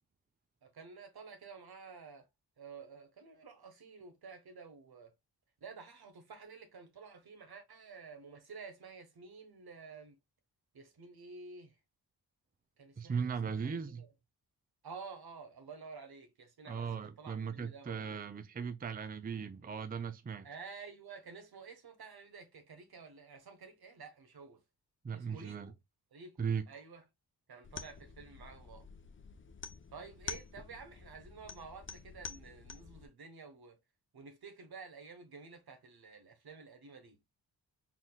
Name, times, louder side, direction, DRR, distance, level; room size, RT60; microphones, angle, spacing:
voice 1, 0.6-2.3 2.6-5.1 5.6-10.2 10.7-11.7 12.8-14.1 14.8-18.2 20.4-24.6 25.1-25.7 26.1-27.0 27.5-28.9 29.9-33.8 34.1-37.2, right 5 dB, 65° right, 1.2 m, -51 dB
voice 2, 13.0-14.0 16.7-20.5 25.0-25.7 26.4-26.6, right 6 dB, 25° right, 0.5 m, -38 dB
sound 1, 27.6-33.0, left 5 dB, 30° left, 0.5 m, -48 dB
4.2 x 3.8 x 2.2 m
cardioid pair, 60°, 40 cm